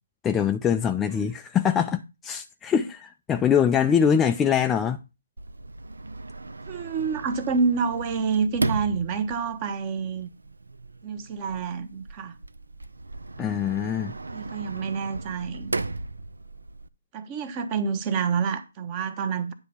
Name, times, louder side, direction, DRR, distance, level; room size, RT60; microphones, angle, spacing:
voice 1, 0.2-5.0 13.4-14.1, left 8 dB, 10° left, 0.4 m, -23 dB
Sliding door, 5.4-16.9, right 2 dB, 85° right, 0.6 m, -36 dB
voice 2, 6.7-10.3 11.0-12.3 14.3-15.8 17.1-19.5, right 5 dB, 25° right, 1.0 m, -28 dB
9.5 x 3.4 x 6.9 m
figure-of-eight pair, 150°, 0 cm